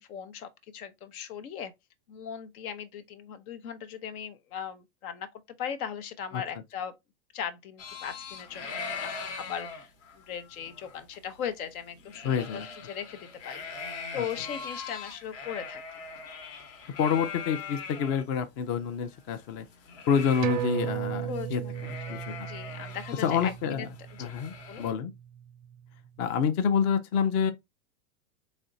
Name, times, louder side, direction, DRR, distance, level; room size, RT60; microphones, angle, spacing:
voice 1, 0.0-1.7 2.1-5.3 5.6-6.9 7.3-13.9 14.1-15.8 21.3-23.9 24.1-24.3 24.7-24.9, left 8 dB, 75° left, 0.9 m, -38 dB
sound 1, 7.8-18.2 18.6-18.7 18.9-21.1 21.3-21.5 21.7-24.9, left 5 dB, 55° left, 1.1 m, -41 dB
voice 2, 12.2-12.7 14.1-14.2 17.0-19.6 20.1-21.6 22.1-22.5 23.2-23.9 24.2-25.1 26.2-27.5, left 7 dB, 30° left, 0.4 m, -27 dB
sound 2, 20.4-25.4 25.7-25.8, right 11 dB, 35° right, 0.4 m, -36 dB
4.2 x 3.2 x 2.6 m
supercardioid pair, 130°, 44 cm